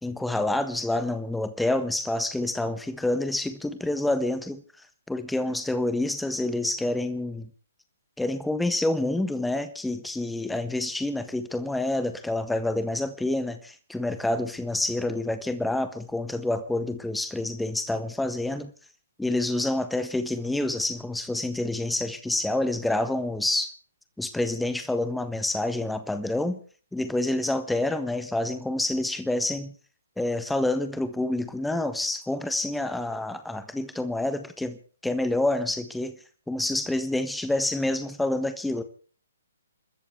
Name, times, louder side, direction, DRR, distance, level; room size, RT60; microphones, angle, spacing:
voice 1, 0.0-4.6 5.1-7.5 8.2-18.7 19.2-23.7 24.2-26.6 26.9-29.7 30.2-34.8 35.0-36.2 36.5-38.8, left 2 dB, 5° left, 1.5 m, -28 dB
29.0 x 13.5 x 3.5 m
figure-of-eight pair, 130°, 0 cm